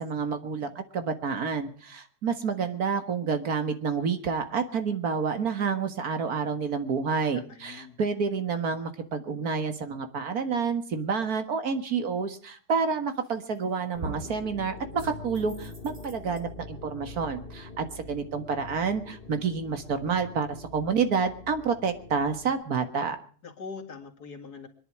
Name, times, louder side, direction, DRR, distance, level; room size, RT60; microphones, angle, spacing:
voice 1, 0.0-23.2, right 5 dB, 70° right, 8 dB, 2.1 m, -29 dB
voice 2, 7.3-8.0 23.4-24.7, left 4 dB, 85° left, 4 dB, 2.6 m, -42 dB
sound 1, 13.2-13.6 14.0-14.4 15.0-16.4, right 2 dB, 45° right, 2.7 m, -41 dB
sound 2, 13.9-22.6, left 3 dB, 35° left, 1.4 m, -45 dB
24.5 x 10.5 x 4.7 m, 0.44 s
omnidirectional pair, 1.6 m